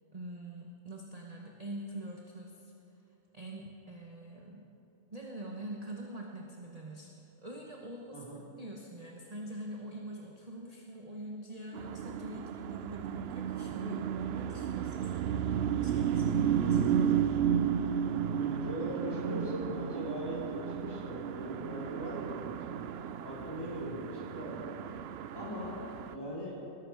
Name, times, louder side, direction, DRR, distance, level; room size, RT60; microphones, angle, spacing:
voice 1, 0.1-2.7 3.3-4.7 5.1-7.1 7.4-8.2 8.6-17.4, right 1 dB, 30° right, -1 dB, 1.2 m, -44 dB
sound 1, 11.7-26.2, right 8 dB, 65° right, 0.7 m, -33 dB
voice 2, 17.8-24.9 25.3-25.7 26.1-26.6, equal, 15° left, -7 dB, 4.3 m, -40 dB
20.5 x 12.0 x 4.9 m, 3.0 s
omnidirectional pair, 1.4 m